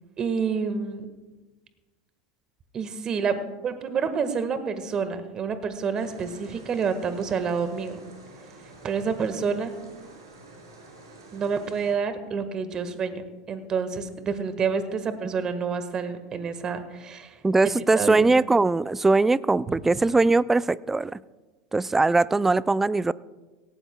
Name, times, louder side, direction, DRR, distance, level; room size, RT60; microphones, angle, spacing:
voice 1, 0.2-1.1 2.7-3.4 3.6-8.0 8.8-9.7 11.3-17.4 17.9-18.3 19.7-19.8, right 5 dB, 35° right, 10 dB, 1.5 m, -28 dB
sound 1, 5.9-11.9, right 2 dB, 80° right, 4.3 m, -48 dB
voice 2, 17.4-21.2 21.7-23.1, right 3 dB, 10° right, 20 dB, 0.3 m, -21 dB
18.0 x 17.0 x 2.3 m, 1.2 s
hypercardioid pair, 85°, 2 cm